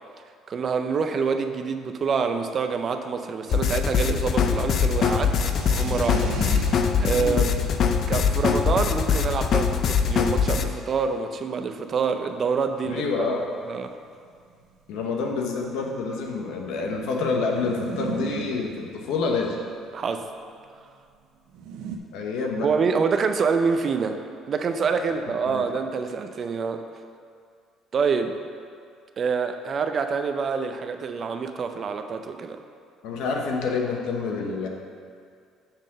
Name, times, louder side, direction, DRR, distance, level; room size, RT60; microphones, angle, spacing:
voice 1, 0.5-5.3 5.7-7.5 8.1-13.1 13.7-13.9 19.9-20.3 22.6-24.2 24.5-26.9 27.9-28.4 29.2-32.6, right 5 dB, 45° right, 7 dB, 0.5 m, -26 dB
sound 1, 3.5-10.7, left 6 dB, 55° left, 0.4 m, -22 dB
sound 2, 4.8-10.9 11.6-11.7 11.8-11.9 12.1-12.3 13.2-13.3 13.6-13.7 14.4-16.0 17.4-20.1 21.5-22.0, right 6 dB, 85° right, 0.6 m, -37 dB
voice 2, 7.1-7.5 12.9-13.4 14.9-19.5 22.1-22.7 25.1-25.2 25.5-25.7 33.0-34.7, left 4 dB, 80° left, 1 dB, 1.0 m, -27 dB
7.3 x 3.7 x 6.5 m, 2.3 s
cardioid pair, 100°, 0 cm